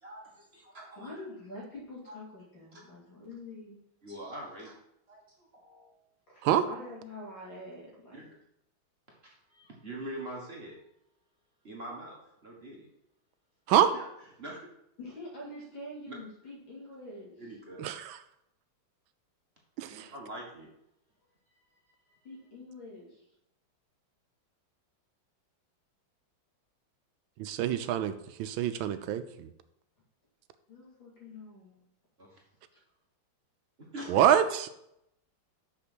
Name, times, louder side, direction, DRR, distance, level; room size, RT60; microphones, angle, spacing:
voice 1, 0.0-1.1 2.1-2.2 4.0-4.7 5.1-6.0 8.1-8.3 9.1-10.8 11.6-12.9 13.9-14.0 14.4-14.6 16.1-16.2 17.4-17.8 19.8-20.7 32.2-32.4 33.9-34.1, right 1 dB, 35° right, -2 dB, 1.6 m, -44 dB
voice 2, 1.0-3.8 6.3-8.3 15.0-17.3 22.2-23.2 30.7-31.8, left 1 dB, 65° left, -5 dB, 3.5 m, -45 dB
voice 3, 17.8-18.2 19.8-20.1 27.4-29.5 34.1-34.7, right 10 dB, 85° right, 10 dB, 1.4 m, -26 dB
6.2 x 5.8 x 6.1 m, 0.80 s
omnidirectional pair, 2.2 m